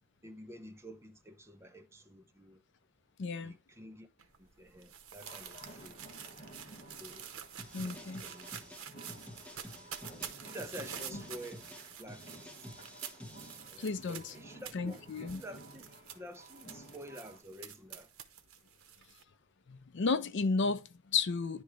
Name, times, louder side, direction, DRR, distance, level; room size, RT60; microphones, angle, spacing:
voice 1, 0.2-2.6 3.4-4.1 4.4-6.0 7.0-7.3 7.7-8.5 8.8-8.9 10.0-11.7 12.0-12.7 13.7-15.9 16.1-18.1, equal, 10° right, 0.6 m, -49 dB
voice 2, 3.2-3.5 7.7-8.3 11.1-11.2 13.8-14.3 14.7-15.4 19.7-21.6, left 4 dB, 55° left, 0.5 m, -33 dB
sound 1, 4.2-19.2, right 9 dB, 80° right, 0.9 m, -48 dB
sound 2, 5.2-17.4, right 1 dB, 30° left, 1.6 m, -54 dB
sound 3, 7.6-13.6, equal, 5° left, 1.2 m, -51 dB
10.0 x 3.9 x 3.1 m
head